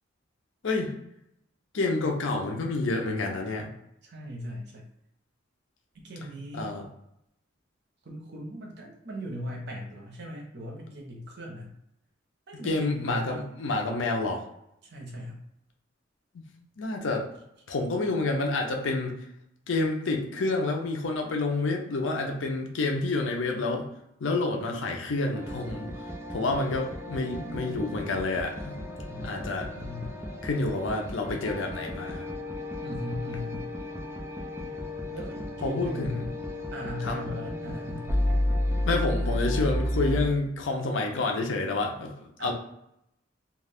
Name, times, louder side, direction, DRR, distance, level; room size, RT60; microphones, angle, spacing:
voice 1, 0.6-0.9 1.7-3.7 6.5-6.9 12.6-14.4 16.8-17.3 17.7-19.1 19.7-23.9 24.2-25.9 26.3-28.8 29.2-29.7 30.4-32.2 35.6-36.3 37.0-37.2 38.8-42.1 42.4-42.5, left 3 dB, 80° left, 1 dB, 0.6 m, -28 dB
voice 2, 4.0-4.8 6.0-6.7 8.0-11.7 12.5-13.4 14.8-15.4 29.1-30.2 32.8-33.7 35.1-36.3 36.7-38.1 42.4-42.5, left 1 dB, 60° right, 0 dB, 0.8 m, -38 dB
sound 1, 25.3-40.3, left 1 dB, 15° right, 0.5 m, -32 dB
2.4 x 2.3 x 3.4 m, 0.79 s
head